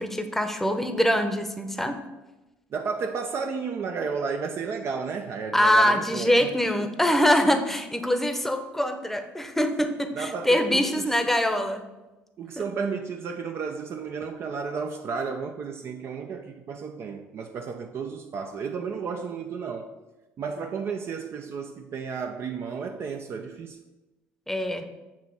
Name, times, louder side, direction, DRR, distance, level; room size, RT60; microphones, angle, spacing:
voice 1, 0.0-2.0 5.5-11.8 12.6-12.7 24.5-24.9, equal, 5° left, 0.8 m, -24 dB
voice 2, 2.7-6.5 10.1-11.1 12.4-19.9 20.4-23.8, right 5 dB, 50° right, 0.5 m, -32 dB
7.3 x 2.9 x 5.9 m
supercardioid pair, 85°, 5 cm